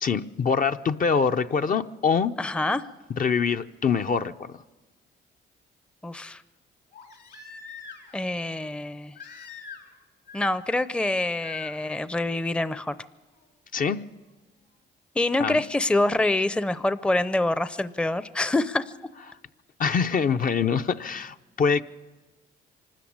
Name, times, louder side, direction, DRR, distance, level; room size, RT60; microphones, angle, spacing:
voice 1, 0.0-2.3 3.2-4.6 13.7-14.0 15.4-15.6 19.8-21.8, left 6 dB, 45° left, 0.7 m, -24 dB
voice 2, 2.4-2.9 6.0-6.4 8.1-9.2 10.3-13.0 15.2-18.8, left 2 dB, 5° left, 0.6 m, -26 dB
Crying sobbing, 6.9-8.2 9.2-10.0 10.3-10.8 11.4-11.7 13.4-13.5, left 6 dB, 60° left, 3.3 m, -44 dB
24.5 x 13.5 x 8.7 m
cardioid pair, 90°, 20 cm